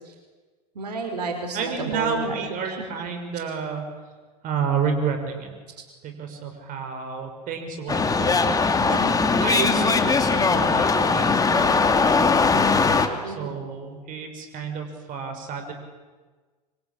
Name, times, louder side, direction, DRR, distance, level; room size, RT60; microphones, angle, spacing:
voice 1, 0.8-2.4 2.6-2.8 9.5-10.0 13.2-13.6, right 3 dB, 75° right, 4 dB, 5.4 m, -31 dB
voice 2, 1.5-3.9 4.4-5.5 6.0-9.0 9.4-9.7 10.0-12.3 13.2-15.7, right 6 dB, 40° right, 5 dB, 6.0 m, -30 dB
sound 1, 7.9-13.1, left 4 dB, 15° left, 2.5 m, -20 dB
26.5 x 25.5 x 8.8 m, 1.3 s
figure-of-eight pair, 90°, 21 cm